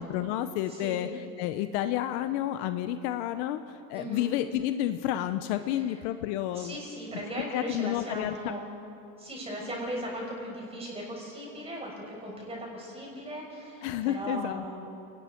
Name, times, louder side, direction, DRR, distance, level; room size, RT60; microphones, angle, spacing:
voice 1, 0.0-6.8 7.5-8.6 13.8-14.6, left 12 dB, 55° left, 10 dB, 0.8 m, -30 dB
voice 2, 0.7-1.1 3.9-4.3 6.5-8.7 9.2-14.8, right 1 dB, 15° right, -2 dB, 6.3 m, -38 dB
29.5 x 20.0 x 4.5 m, 2.7 s
supercardioid pair, 150°, 42 cm